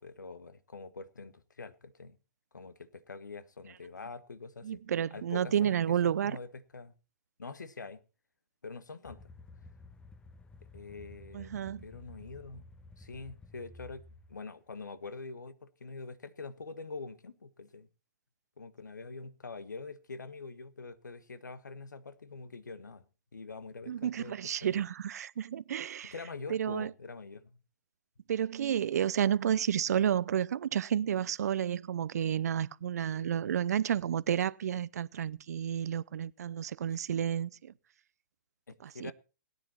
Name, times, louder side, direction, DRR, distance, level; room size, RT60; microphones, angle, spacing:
voice 1, 0.0-2.2 2.5-4.8 5.1-6.9 7.4-8.0 8.6-9.3 10.7-11.5 11.8-12.7 13.0-17.9 18.6-23.0 23.3-24.3 24.6-24.8 26.0-27.6 33.0-33.9 38.7-39.1, left 4 dB, 75° left, 1.3 m, -45 dB
voice 2, 4.6-6.4 11.3-11.8 23.9-26.1 26.5-26.9 28.3-37.7 38.8-39.1, right 9 dB, 60° right, 0.6 m, -31 dB
sound 1, 9.0-14.4, left 2 dB, 10° left, 0.8 m, -53 dB
18.0 x 10.0 x 4.3 m
figure-of-eight pair, 120°, 10 cm